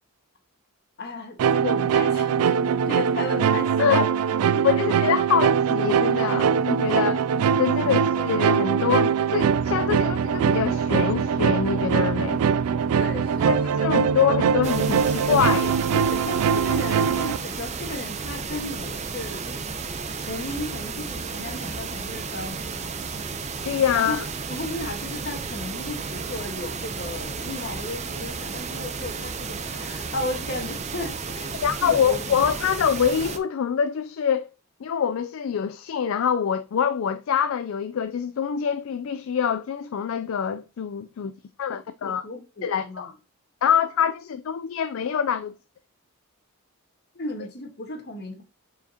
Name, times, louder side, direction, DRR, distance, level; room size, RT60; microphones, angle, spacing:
voice 1, 1.0-4.1 4.4-4.8 7.8-7.9 12.9-14.2 15.9-19.7 20.2-22.9 23.9-24.2 24.5-32.4 42.0-43.1 47.1-48.4, left 2 dB, 45° left, 1.4 m, -35 dB
sound 1, 1.4-17.4, right 7 dB, 75° right, 0.3 m, -22 dB
voice 2, 4.6-7.2 7.6-12.4 13.5-15.8 23.7-24.2 31.6-34.5 34.8-41.3 41.6-42.2 42.6-43.1 43.6-45.5, left 7 dB, 65° left, 0.3 m, -25 dB
sound 2, 14.6-33.4, right 5 dB, 30° right, 0.6 m, -33 dB
6.8 x 4.9 x 2.8 m
head